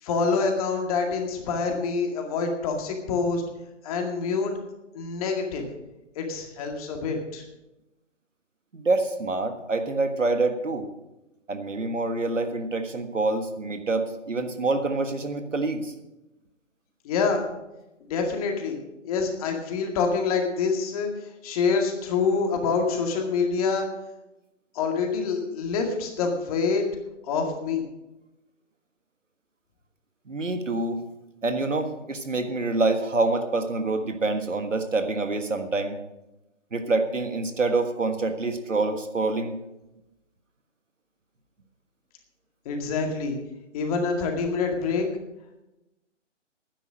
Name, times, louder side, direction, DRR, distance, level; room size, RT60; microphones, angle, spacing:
voice 1, 0.0-3.4 3.8-4.5 4.9-5.7 6.2-7.4 17.0-17.5 18.1-18.8 19.0-21.1 21.4-23.8 24.7-26.8 27.2-27.8 42.7-43.4 43.7-45.1, left 5 dB, 30° left, 3 dB, 2.1 m, -26 dB
voice 2, 8.7-10.9 11.5-15.9 30.3-31.0 31.4-36.0 36.7-39.6, right 3 dB, 90° right, 7 dB, 1.6 m, -26 dB
12.0 x 9.8 x 6.3 m, 0.97 s
figure-of-eight pair, 140°, 36 cm